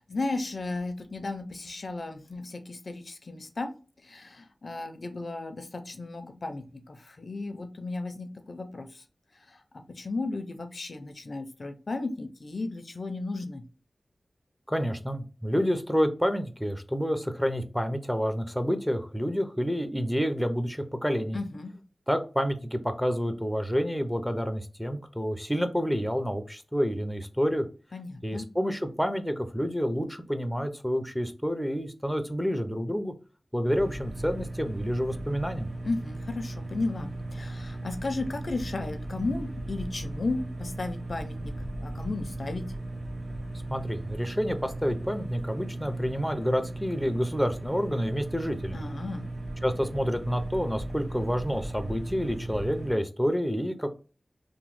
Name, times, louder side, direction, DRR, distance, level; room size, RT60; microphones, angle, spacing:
voice 1, 0.0-3.7 4.0-9.0 9.5-13.6 21.3-21.7 27.9-28.5 35.8-41.5 41.8-42.7 48.7-49.3, left 3 dB, 60° left, 8 dB, 0.4 m, -34 dB
voice 2, 14.7-21.4 22.1-27.6 28.2-33.1 33.5-35.7 43.7-48.8 49.6-53.9, equal, ahead, 7 dB, 0.4 m, -29 dB
sound 1, 33.6-52.9, right 1 dB, 70° right, 0.8 m, -37 dB
2.9 x 2.0 x 3.1 m, 0.34 s
wide cardioid pair, 90°, 0 cm